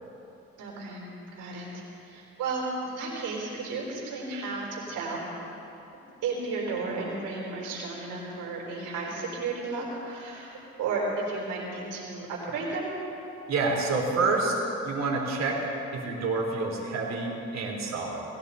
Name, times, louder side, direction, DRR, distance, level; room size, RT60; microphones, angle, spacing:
voice 1, 0.6-1.0 1.4-1.7 2.1-5.2 6.2-12.9, right 3 dB, 90° right, -3 dB, 4.2 m, -33 dB
voice 2, 13.5-14.6 14.8-18.2, right 3 dB, 60° right, -2 dB, 3.8 m, -28 dB
19.5 x 16.0 x 4.2 m, 2.9 s
cardioid pair, 90°, 30 cm